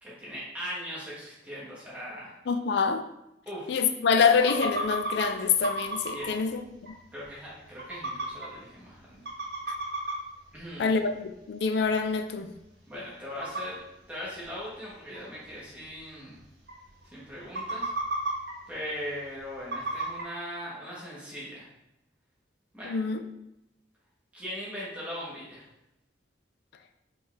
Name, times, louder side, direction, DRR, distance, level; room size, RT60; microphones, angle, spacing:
voice 1, 0.0-2.3 3.5-3.8 6.1-6.3 7.1-9.2 10.5-11.0 12.9-13.8 14.1-16.4 17.1-17.9 18.7-21.7 22.7-23.0 24.3-25.6, equal, 5° right, -8 dB, 0.9 m, -39 dB
voice 2, 2.5-3.0 3.7-6.6 10.8-12.5 22.8-23.2, left 5 dB, 60° left, 8 dB, 0.4 m, -25 dB
sound 1, 4.4-5.3 5.6-6.3 6.9-7.0 7.2-7.3 7.8-8.5 9.0-9.1 9.3-10.1 10.6-10.7 11.8-11.9 12.3-12.4 13.4-13.6 14.4-14.5 15.1-15.2 15.5-15.6 15.8-15.9 16.4-16.5 16.7-17.0 17.4-18.5 19.7-20.2, right 2 dB, 55° right, 1.1 m, -32 dB
5.2 x 2.3 x 3.8 m, 0.88 s
head